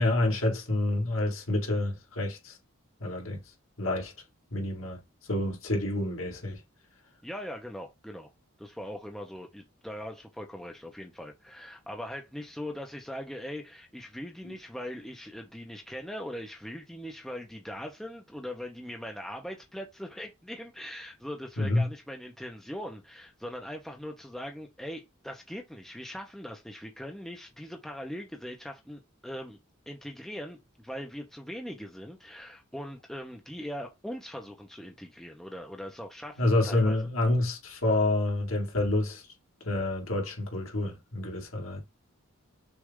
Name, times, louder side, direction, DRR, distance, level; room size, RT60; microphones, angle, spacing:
voice 1, 0.0-2.6 3.0-3.4 3.8-4.1 4.5-6.6 14.4-14.5 21.6-21.9 36.4-39.2 39.6-41.8, left 2 dB, 70° left, 2.0 m, -28 dB
voice 2, 7.2-8.3 8.6-29.6 29.9-37.0, equal, ahead, 0.6 m, -41 dB
6.2 x 2.4 x 3.6 m
head